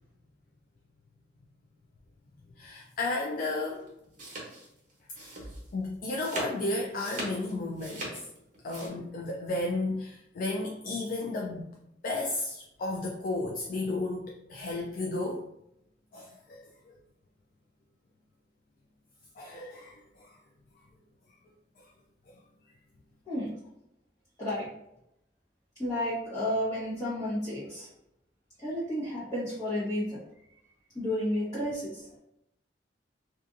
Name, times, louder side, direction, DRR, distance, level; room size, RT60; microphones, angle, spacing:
voice 1, 2.6-3.8 5.2-5.4 5.7-8.2 8.6-11.7 12.0-15.4 16.1-16.6 19.4-20.3, left 2 dB, 50° left, -1 dB, 0.3 m, -33 dB
sound 1, 3.7-8.9, right 1 dB, 50° right, 0.9 m, -40 dB
voice 2, 25.8-27.9 28.6-30.2 30.9-32.1, left 1 dB, 25° left, -11 dB, 1.0 m, -31 dB
2.5 x 2.5 x 2.5 m, 0.81 s
head